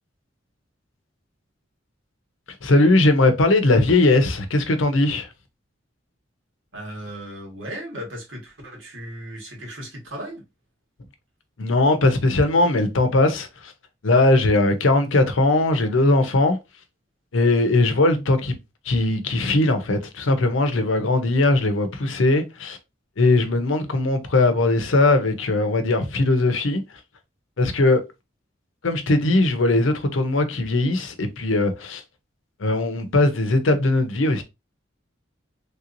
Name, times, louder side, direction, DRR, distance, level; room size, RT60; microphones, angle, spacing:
voice 1, 2.6-5.3 11.6-13.7 14.0-16.6 17.3-18.6 18.8-22.8 23.2-26.8 27.6-28.0 28.8-32.0 32.6-34.4, left 2 dB, 85° left, 0.7 m, -19 dB
voice 2, 6.7-10.4 17.7-18.0, right 1 dB, 80° right, 1.7 m, -36 dB
3.4 x 2.9 x 2.6 m
head